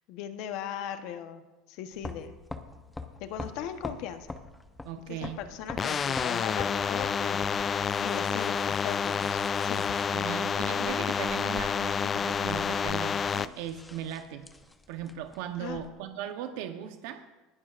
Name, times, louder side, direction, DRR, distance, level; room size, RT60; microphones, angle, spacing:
voice 1, 0.1-1.4 1.7-2.3 3.2-4.4 5.1-9.9 15.6-15.8, left 9 dB, 65° left, 8 dB, 1.0 m, -38 dB
sound 1, 1.9-15.9, left 2 dB, 10° left, 0.8 m, -45 dB
voice 2, 4.8-5.4 10.1-14.5 14.9-17.2, right 9 dB, 75° right, 7 dB, 0.9 m, -38 dB
sound 2, 5.8-13.5, left 7 dB, 25° left, 0.3 m, -29 dB
20.5 x 11.5 x 2.5 m, 1.1 s
supercardioid pair, 130°, 0 cm